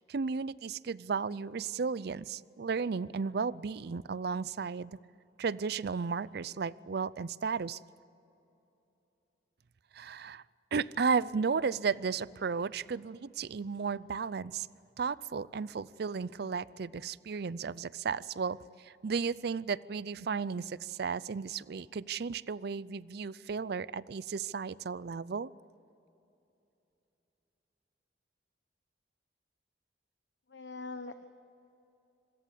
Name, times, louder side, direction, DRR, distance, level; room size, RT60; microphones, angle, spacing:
voice 1, 0.0-5.0 5.4-7.8 9.9-10.4 10.7-14.7 15.0-25.5, right 5 dB, 60° right, 20 dB, 0.5 m, -34 dB
voice 2, 30.5-31.3, left 3 dB, 80° left, 9 dB, 0.9 m, -42 dB
26.0 x 22.0 x 8.5 m, 2.9 s
head